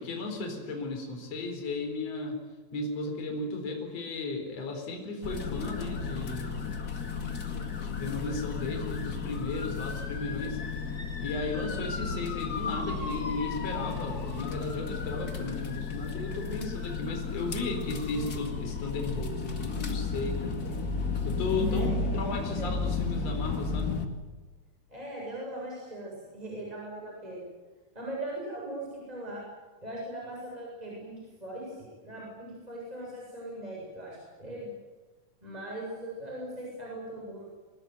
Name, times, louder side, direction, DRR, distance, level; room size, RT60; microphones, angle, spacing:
voice 1, 0.0-2.4 2.7-6.6 7.8-10.6 11.2-20.6 21.2-23.9, left 3 dB, 45° left, 3 dB, 5.2 m, -35 dB
sound 1, 5.2-24.1, left 4 dB, 30° left, 2.1 m, -33 dB
voice 2, 21.7-22.2 22.6-22.7 24.9-27.5 27.9-29.4 29.8-34.7 35.4-37.4, right 1 dB, 10° right, -3 dB, 7.8 m, -40 dB
25.0 x 20.5 x 9.5 m, 1.3 s
omnidirectional pair, 3.9 m